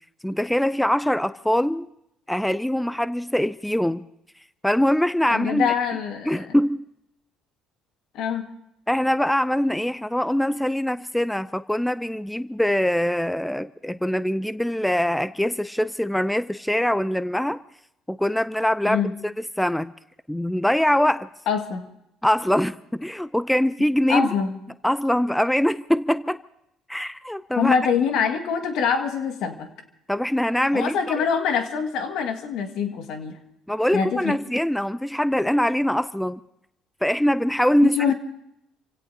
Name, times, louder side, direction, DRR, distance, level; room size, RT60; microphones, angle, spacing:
voice 1, 0.2-1.9 2.3-4.0 4.6-5.7 6.3-6.9 8.9-17.6 18.1-19.0 19.4-19.9 20.3-21.3 22.2-24.3 24.8-26.4 26.9-27.8 30.1-31.2 33.7-36.4 37.0-38.0, equal, 5° left, 14 dB, 0.6 m, -23 dB
voice 2, 5.3-6.5 8.1-8.5 18.9-19.1 21.5-21.9 24.1-24.6 27.6-29.7 30.7-33.4 33.9-34.4 37.8-38.1, left 6 dB, 70° left, 5 dB, 2.1 m, -24 dB
29.0 x 17.0 x 2.9 m, 0.81 s
hypercardioid pair, 70°, 0 cm